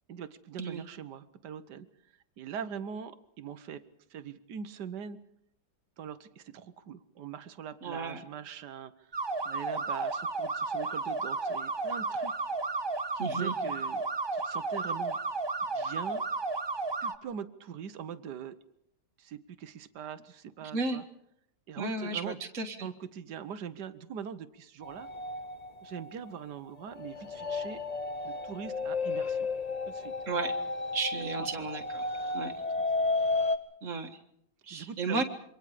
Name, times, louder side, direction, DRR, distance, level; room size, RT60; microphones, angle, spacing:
voice 1, 0.1-1.9 2.4-3.8 4.1-5.2 6.0-9.1 9.4-12.3 13.1-14.0 14.3-15.2 15.6-16.2 17.0-18.6 19.2-21.0 21.7-22.4 22.8-25.1 25.8-27.8 28.2-29.5 29.9-30.1 31.2-31.7 34.7-35.2, right 8 dB, 80° right, 12 dB, 1.6 m, -42 dB
voice 2, 7.8-8.2 13.2-13.6 20.7-21.0 21.8-22.9 30.3-30.5 30.9-32.0 32.3-32.5 33.8-34.1 34.7-35.2, right 3 dB, 50° right, 4 dB, 2.0 m, -33 dB
sound 1, 9.1-17.2, right 3 dB, 30° right, 0.5 m, -33 dB
sound 2, 24.8-33.6, left 3 dB, 30° left, 1.0 m, -33 dB
27.5 x 24.0 x 5.0 m, 0.74 s
omnidirectional pair, 1.8 m